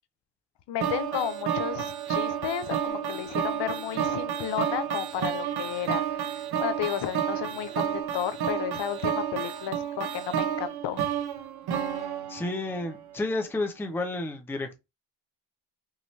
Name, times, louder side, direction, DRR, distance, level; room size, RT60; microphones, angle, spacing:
voice 1, 0.7-11.1, left 10 dB, 65° left, 0.7 m, -33 dB
sound 1, 0.8-13.0, right 9 dB, 55° right, 0.8 m, -31 dB
sound 2, 2.9-5.8 6.8-8.0, left 2 dB, 25° left, 1.4 m, -48 dB
voice 2, 12.3-14.8, left 2 dB, 5° left, 0.5 m, -31 dB
5.6 x 2.9 x 3.1 m
cardioid pair, 170°, 45 cm